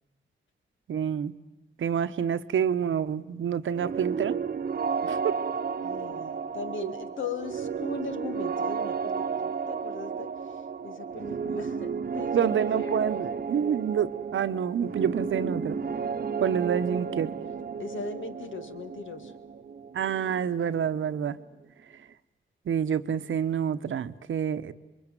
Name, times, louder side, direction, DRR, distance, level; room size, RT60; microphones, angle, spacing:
voice 1, 0.9-1.3 1.8-4.4 5.0-5.4 6.8-6.9 12.3-15.8 16.4-17.3 19.9-21.4 22.7-24.7, right 8 dB, 90° right, 12 dB, 1.0 m, -28 dB
sound 1, 3.7-21.4, right 6 dB, 50° right, 0.9 m, -33 dB
voice 2, 5.8-13.2 17.8-19.4, left 5 dB, 80° left, 8 dB, 2.2 m, -39 dB
27.0 x 22.5 x 9.1 m, 1.0 s
wide cardioid pair, 115°, 20 cm